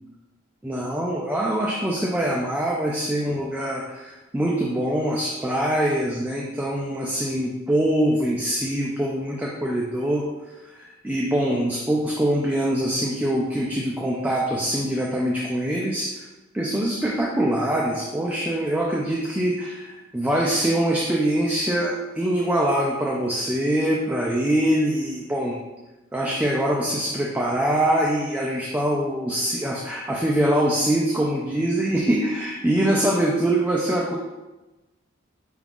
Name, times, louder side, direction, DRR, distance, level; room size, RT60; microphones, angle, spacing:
voice 1, 0.6-10.3 10.7-16.3 16.5-25.6 26.1-34.2, right 1 dB, 5° right, -3 dB, 0.3 m, -24 dB
4.8 x 2.3 x 3.6 m, 1.1 s
head